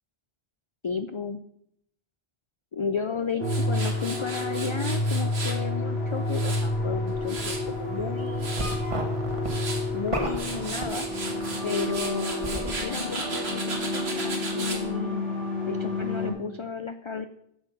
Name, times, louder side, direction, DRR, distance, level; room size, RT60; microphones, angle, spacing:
voice 1, 0.8-1.4 2.7-8.7 9.9-11.1 11.6-15.2 15.7-17.3, left 5 dB, 50° left, 10 dB, 0.3 m, -33 dB
sound 1, 3.4-16.3, left 2 dB, 25° left, 2.4 m, -30 dB
Tools, 3.4-5.6 6.1-7.7 8.2-8.8 9.3-9.8 10.2-14.8, right 3 dB, 90° right, 1.9 m, -36 dB
sound 2, 7.4-7.6 8.0-11.5 11.8-12.8, right 1 dB, 30° right, 1.5 m, -33 dB
8.2 x 6.6 x 6.0 m, 0.75 s
omnidirectional pair, 1.0 m